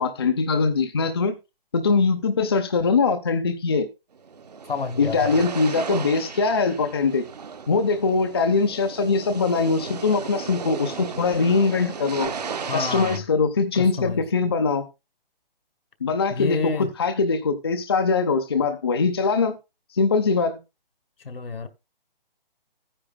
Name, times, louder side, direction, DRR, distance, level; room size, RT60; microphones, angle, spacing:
voice 1, 0.0-1.3 1.7-3.9 5.0-7.2 7.7-12.3 12.7-14.8 16.0-19.6 19.9-20.6, left 4 dB, 25° left, 0.7 m, -22 dB
sound 1, 4.1-13.2, right 6 dB, 45° right, 1.2 m, -35 dB
voice 2, 4.6-5.4 12.7-13.2 13.7-14.2 16.3-16.9 21.2-21.7, left 5 dB, 70° left, 1.7 m, -29 dB
15.0 x 9.9 x 2.2 m
hypercardioid pair, 170°, 29 cm